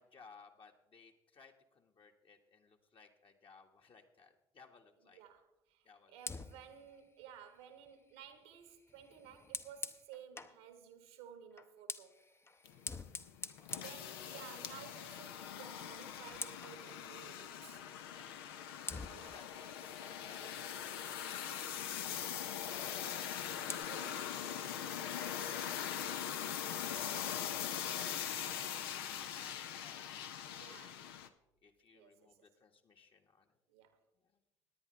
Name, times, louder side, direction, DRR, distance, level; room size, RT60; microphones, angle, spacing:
voice 1, 0.0-5.2 5.8-6.4 12.6-13.0 13.4-13.7 19.0-20.8 26.8-30.8 31.2-31.3 31.6-33.6 34.1-34.4, left 5 dB, 45° left, 1.7 m, -63 dB
voice 2, 5.0-12.2 13.8-17.8 19.1-19.4 23.9-25.9 30.4-31.1 31.9-32.5 33.7-34.0, right 8 dB, 80° right, 1.4 m, -56 dB
Fire, 6.2-10.6 11.5-14.8 15.1-15.4 15.7-16.8 18.2-18.3 18.9-21.2 23.1-23.9, left 3 dB, 20° left, 0.7 m, -48 dB
sound 1, 12.7-31.3, left 9 dB, 80° left, 0.6 m, -42 dB
18.0 x 10.0 x 3.3 m
hypercardioid pair, 55°, 12 cm